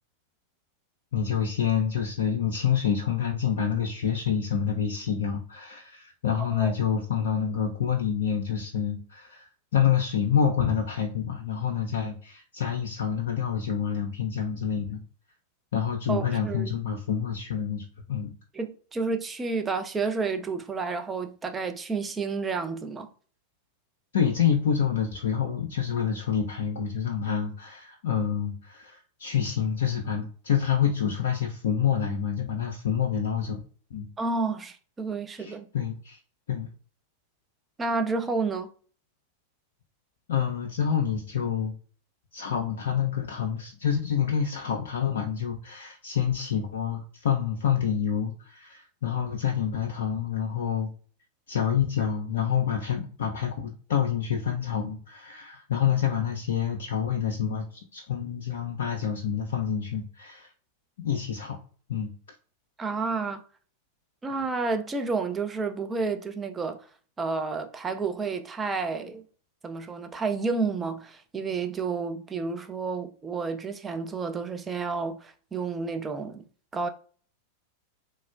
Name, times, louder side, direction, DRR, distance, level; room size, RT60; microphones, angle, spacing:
voice 1, 1.1-15.0 15.7-18.3 24.1-33.6 33.9-34.1 35.4-36.2 36.5-36.7 40.3-41.7 42.3-50.9 51.5-60.5 61.0-61.6 61.9-62.1, left 8 dB, 60° left, 0.3 m, -27 dB
voice 2, 6.4-6.7 16.1-16.7 18.5-23.1 34.2-35.7 37.8-38.7 62.8-63.4 64.2-66.8 67.2-69.2 69.6-76.4 76.7-76.9, right 4 dB, 15° right, 0.4 m, -30 dB
3.1 x 2.1 x 2.3 m
figure-of-eight pair, 90°, 0 cm